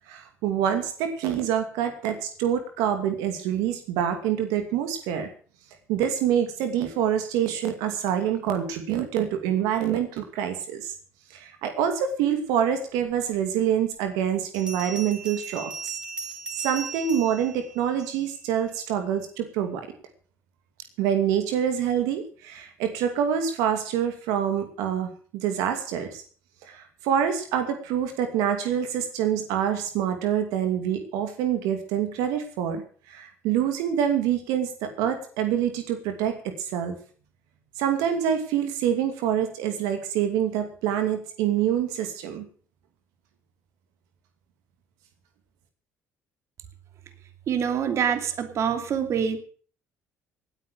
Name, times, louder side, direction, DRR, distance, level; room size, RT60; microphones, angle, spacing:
voice 1, 0.1-5.3 5.9-10.9 11.3-15.9 16.6-19.9 21.0-26.2 26.6-32.8 33.1-36.9 37.8-42.5, right 9 dB, 90° right, 7 dB, 2.5 m, -26 dB
Bell, 14.5-18.4, right 5 dB, 15° right, 3.2 m, -38 dB
voice 2, 47.5-49.4, right 7 dB, 55° right, 8 dB, 2.7 m, -25 dB
19.0 x 9.3 x 6.6 m, 0.43 s
cardioid pair, 100°, 6 cm